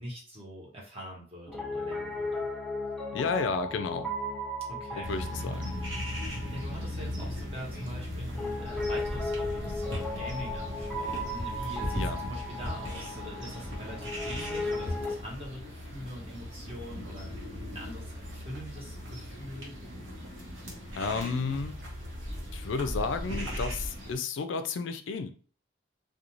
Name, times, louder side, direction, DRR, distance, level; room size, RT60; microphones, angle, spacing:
voice 1, 0.0-2.5 4.7-5.1 6.5-19.8, equal, 30° right, -3 dB, 1.0 m, -43 dB
Piano, 1.5-15.2, left 1 dB, ahead, 0.6 m, -36 dB
voice 2, 3.1-4.1 5.1-5.7 11.9-12.2 21.0-21.7 22.5-25.3, left 4 dB, 65° left, 8 dB, 0.3 m, -32 dB
sound 1, 5.0-24.2, equal, 70° right, 1.0 m, -37 dB
2.5 x 2.2 x 3.0 m, 0.40 s
head